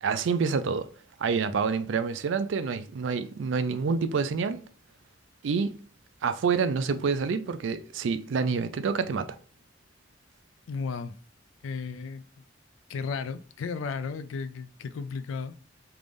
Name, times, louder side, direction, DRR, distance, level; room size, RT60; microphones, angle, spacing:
voice 1, 0.0-0.9 1.2-4.6 5.4-5.7 6.2-9.3, right 5 dB, 75° right, 0.4 m, -27 dB
voice 2, 10.7-11.2 11.6-12.2 12.9-15.6, left 5 dB, 90° left, 0.4 m, -34 dB
3.3 x 2.5 x 3.4 m
head